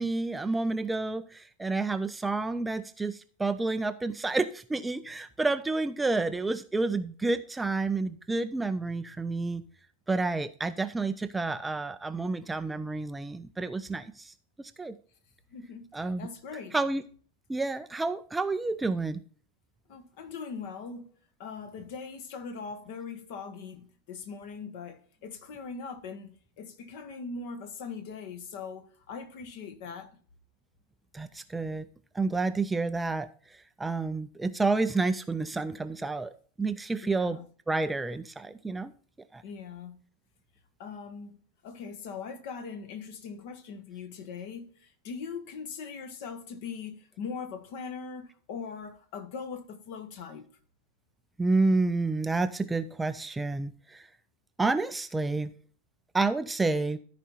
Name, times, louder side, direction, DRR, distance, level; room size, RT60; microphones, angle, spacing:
voice 1, 0.0-9.6 10.1-14.9 15.9-16.3 16.7-17.0 17.5-19.2 31.1-31.9 32.1-33.3 33.8-37.4 37.7-38.9 39.3-39.4 51.4-54.1 54.6-55.5 56.1-57.0, right 3 dB, 10° right, 0.5 m, -29 dB
voice 2, 15.5-16.8 19.9-21.1 21.4-30.1 37.0-37.5 39.4-40.0 40.8-41.4 41.6-50.4, left 5 dB, 50° left, 1.5 m, -41 dB
13.5 x 5.1 x 4.2 m
figure-of-eight pair, 90°, 0 cm